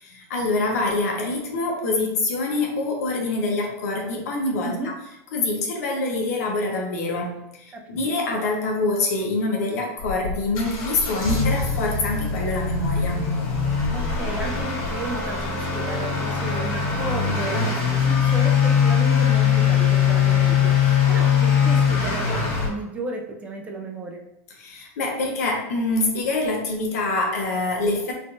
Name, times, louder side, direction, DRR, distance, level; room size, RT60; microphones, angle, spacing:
voice 1, 0.0-4.9 5.3-13.3 24.6-28.1, left 2 dB, 85° left, 1 dB, 0.9 m, -25 dB
Motor vehicle (road) / Accelerating revving vroom, 10.0-22.7, left 7 dB, 55° left, 1.2 m, -21 dB
voice 2, 13.9-24.2, right 2 dB, 15° right, 2 dB, 0.4 m, -33 dB
3.5 x 2.6 x 2.6 m, 0.89 s
supercardioid pair, 150°, 8 cm